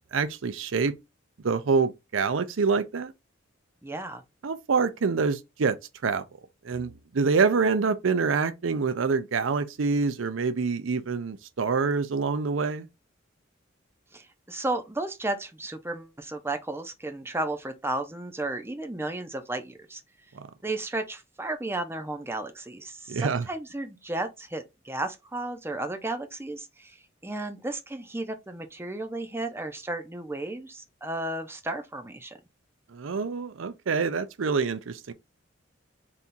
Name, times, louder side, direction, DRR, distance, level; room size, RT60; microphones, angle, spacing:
voice 1, 0.1-0.9 1.4-3.1 4.4-5.8 6.0-6.2 6.6-12.9 20.4-20.5 23.1-23.4 32.9-35.1, right 4 dB, 85° right, 0.5 m, -26 dB
voice 2, 3.8-4.2 14.1-20.0 20.6-27.0 27.2-32.4, right 2 dB, 15° right, 0.8 m, -33 dB
4.2 x 3.6 x 2.6 m
head